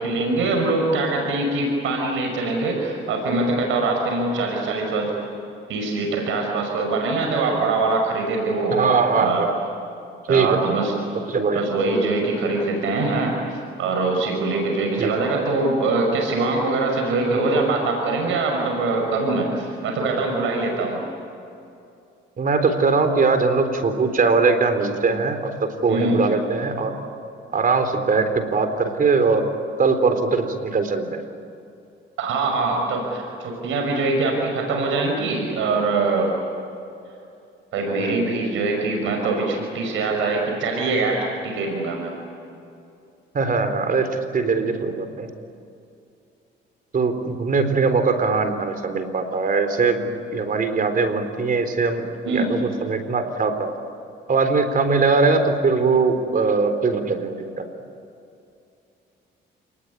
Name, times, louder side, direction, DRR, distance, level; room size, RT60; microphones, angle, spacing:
voice 1, 0.0-5.1 5.7-8.7 9.1-9.4 10.3-10.9 11.5-13.3 13.8-21.0 25.9-26.2 32.2-36.3 37.7-42.1 52.2-52.5, right 3 dB, 85° right, 1 dB, 5.8 m, -23 dB
voice 2, 8.7-9.6 10.3-10.8 11.3-11.7 15.0-15.1 22.4-27.0 27.5-29.4 29.8-31.2 38.0-38.2 43.3-45.3 46.9-53.7 54.3-57.6, right 4 dB, 45° right, 8 dB, 4.0 m, -21 dB
29.5 x 20.0 x 9.9 m, 2.6 s
cardioid pair, 90°, 20 cm